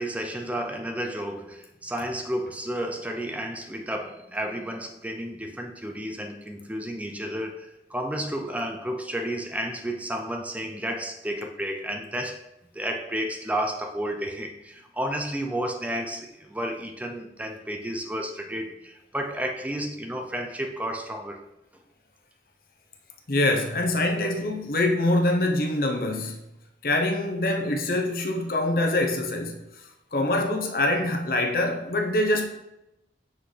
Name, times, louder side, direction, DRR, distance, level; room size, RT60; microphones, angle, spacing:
voice 1, 0.0-21.4, right 1 dB, 10° right, 0.5 m, -32 dB
voice 2, 23.3-26.4 26.8-29.6 30.1-32.4, left 1 dB, 55° left, 0.8 m, -24 dB
5.9 x 5.8 x 3.3 m
head